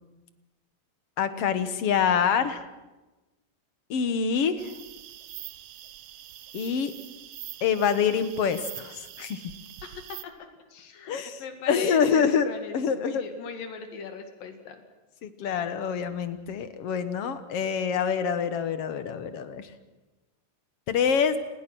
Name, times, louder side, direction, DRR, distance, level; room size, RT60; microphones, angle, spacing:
voice 1, 1.2-2.6 3.9-4.7 6.5-6.9 7.6-9.5 11.1-11.4 11.7-13.2 15.2-19.7 20.9-21.4, left 7 dB, 55° left, 11 dB, 1.9 m, -26 dB
sound 1, 4.6-10.2, right 12 dB, 85° right, 1.3 m, -44 dB
voice 2, 9.8-10.3 10.7-14.8, left 5 dB, 85° left, 6 dB, 3.8 m, -39 dB
29.5 x 20.5 x 6.2 m, 1.1 s
omnidirectional pair, 3.9 m